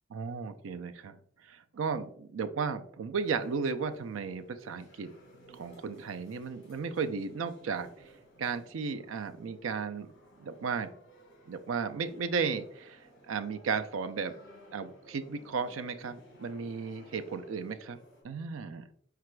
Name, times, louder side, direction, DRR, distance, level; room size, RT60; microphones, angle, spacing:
voice 1, 0.1-1.2 1.4-5.1 5.5-7.9 8.4-10.1 10.4-10.9 11.5-14.3 14.7-18.0 18.2-18.9, right 5 dB, 85° right, 9 dB, 0.4 m, -34 dB
sound 1, 3.1-18.2, equal, 65° left, 2.0 m, -57 dB
4.9 x 4.6 x 2.2 m, 0.64 s
head